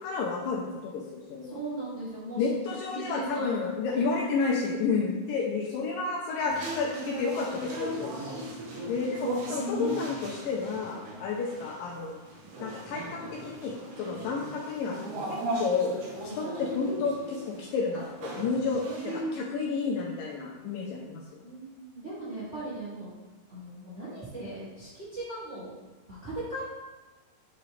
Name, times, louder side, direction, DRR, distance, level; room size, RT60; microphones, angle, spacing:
voice 1, 0.0-1.6 2.4-8.1 8.9-12.2 12.6-15.0 15.3-16.0 16.4-21.4, left 4 dB, 80° left, -1 dB, 2.1 m, -31 dB
voice 2, 1.4-4.0 8.0-9.0 11.1-11.4 13.9-14.3 21.4-23.1 23.5-25.7 26.1-26.6, right 2 dB, 25° right, -10 dB, 1.5 m, -40 dB
sound 1, 6.5-19.2, right 1 dB, 85° right, 3.3 m, -37 dB
9.4 x 4.1 x 3.2 m, 1.2 s
omnidirectional pair, 4.5 m